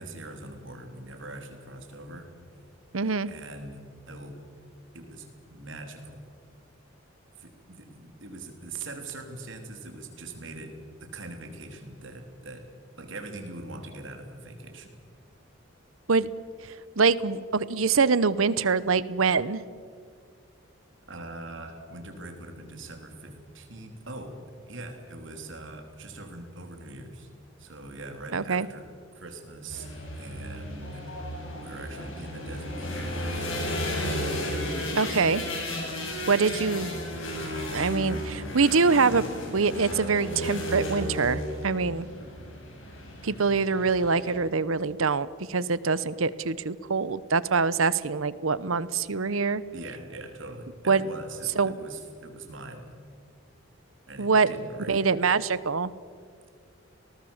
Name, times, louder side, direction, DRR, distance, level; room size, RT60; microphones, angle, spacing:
voice 1, 0.0-2.3 3.3-4.4 4.9-6.2 7.4-12.7 13.0-15.0 21.1-24.4 24.7-27.3 27.6-31.1 31.5-33.5 49.7-52.9 54.1-55.0, right 2 dB, 65° right, 4 dB, 3.5 m, -42 dB
voice 2, 2.9-3.3 16.1-16.3 17.0-19.6 28.3-28.7 35.0-35.4 36.3-36.9 37.7-39.2 39.5-42.1 43.2-49.6 50.9-51.0 51.6-51.7 54.2-54.5 54.9-55.9, right 4 dB, 85° right, 17 dB, 0.9 m, -24 dB
sound 1, 29.7-44.3, left 1 dB, 75° left, 6.4 m, -34 dB
29.0 x 19.0 x 7.3 m, 2.1 s
head